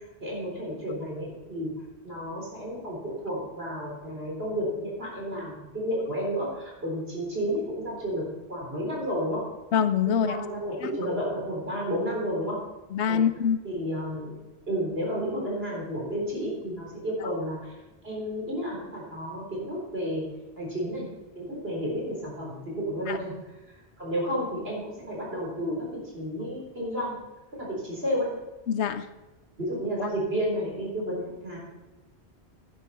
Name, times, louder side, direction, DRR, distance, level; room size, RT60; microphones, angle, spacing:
voice 1, 0.2-1.7 2.0-9.5 10.1-12.6 13.1-13.2 13.6-14.3 14.7-17.7 18.0-20.2 20.6-21.1 21.4-23.5 24.0-27.2 27.5-28.3 29.6-31.6, equal, 65° right, -3 dB, 4.2 m, -31 dB
voice 2, 9.7-10.4 10.8-10.9 12.9-13.6 23.1-23.2 28.7-29.1, left 8 dB, 85° left, 12 dB, 1.0 m, -24 dB
11.0 x 10.0 x 4.3 m, 1.1 s
omnidirectional pair, 1.1 m